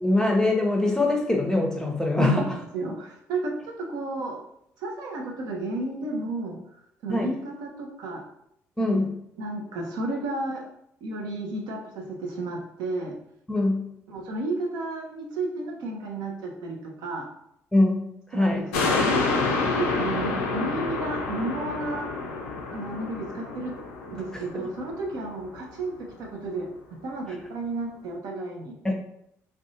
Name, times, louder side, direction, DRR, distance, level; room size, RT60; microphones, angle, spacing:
voice 1, 0.0-2.5 7.1-7.3 8.8-9.2 13.5-13.9 17.7-18.0 18.3-18.6 24.5-24.7 28.8-28.9, left 2 dB, 10° left, 1 dB, 0.6 m, -23 dB
voice 2, 2.2-4.4 4.8-6.6 7.0-8.2 8.8-9.1 9.4-10.6 11.0-13.2 14.1-17.3 18.3-19.3 19.7-22.1 22.7-23.7 24.1-26.7 27.0-28.7, right 2 dB, 70° right, 0 dB, 0.5 m, -32 dB
sound 1, 18.7-25.4 25.8-25.9, left 3 dB, 85° left, 0.3 m, -28 dB
2.6 x 2.1 x 2.7 m, 0.75 s
hypercardioid pair, 50°, 7 cm